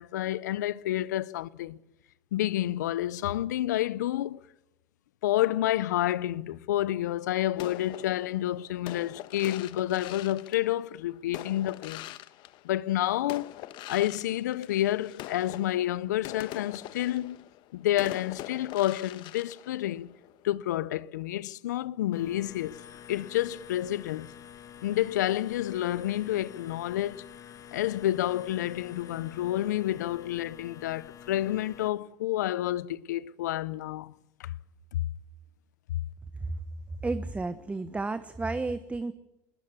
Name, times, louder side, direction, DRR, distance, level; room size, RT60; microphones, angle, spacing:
voice 1, 0.0-1.8 2.3-4.4 5.2-12.1 12.6-13.5 13.9-17.4 17.7-20.1 20.4-22.8 23.1-24.3 24.8-27.3 27.7-34.1 34.4-34.5 34.9-35.0, left 13 dB, 85° left, 0.7 m, -29 dB
sound 1, 7.6-13.0 13.3-20.5, left 15 dB, 55° left, 1.2 m, -43 dB
sound 2, 22.1-31.9, left 9 dB, 35° left, 1.5 m, -48 dB
voice 2, 37.0-39.1, right 3 dB, 15° right, 1.1 m, -32 dB
21.0 x 19.5 x 7.2 m
hypercardioid pair, 100°, 9 cm